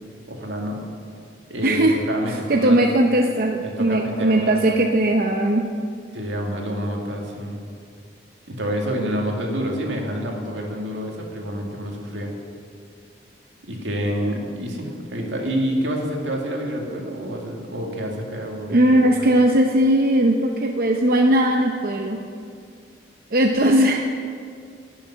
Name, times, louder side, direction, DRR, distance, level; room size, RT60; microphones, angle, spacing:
voice 1, 0.3-0.8 1.5-1.8 2.1-2.8 3.6-4.7 6.1-7.6 8.5-12.3 13.7-19.3, equal, 80° right, 0 dB, 2.2 m, -28 dB
voice 2, 1.6-2.0 2.3-5.7 18.7-22.2 23.3-24.0, right 1 dB, 50° right, 2 dB, 0.7 m, -18 dB
12.0 x 7.2 x 10.0 m, 2.3 s
head